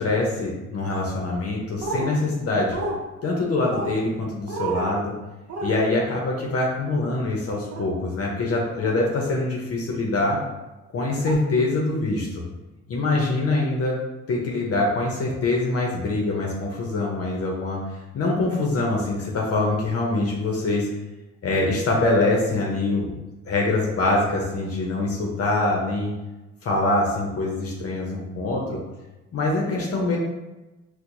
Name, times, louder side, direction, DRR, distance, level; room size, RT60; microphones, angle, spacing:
voice 1, 0.0-2.8 3.2-5.1 5.6-10.4 10.9-12.4 12.9-14.0 14.3-17.8 18.1-20.9 21.4-23.1 23.4-26.1 26.6-28.8 29.3-30.2, left 2 dB, 50° left, -2 dB, 0.7 m, -24 dB
sound 1, 1.8-2.1 2.7-3.0 3.7-3.9 4.5-4.9 5.5-5.7 7.7-7.9 8.8-9.0 10.3-10.4 11.3-11.4, right 3 dB, 55° right, 0.7 m, -29 dB
4.3 x 2.2 x 2.6 m, 1.1 s
cardioid pair, 90°, 30 cm